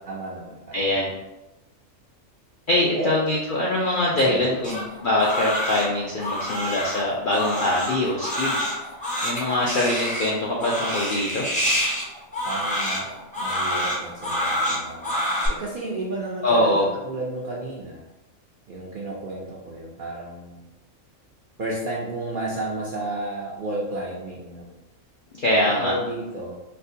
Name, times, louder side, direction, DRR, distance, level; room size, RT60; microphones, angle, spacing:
voice 1, 0.1-0.9 3.0-3.1 4.2-4.7 12.4-15.1 15.5-18.0 18.7-20.6 21.6-24.7 25.7-26.6, right 2 dB, 60° right, -5 dB, 0.5 m, -32 dB
voice 2, 0.7-1.1 2.7-8.6 9.2-11.5 16.4-16.8 25.3-25.9, left 1 dB, 65° left, -5 dB, 0.5 m, -23 dB
Crying sobbing, 4.6-15.5, equal, 10° left, 0.5 m, -27 dB
4.3 x 2.1 x 2.6 m, 0.99 s
omnidirectional pair, 1.4 m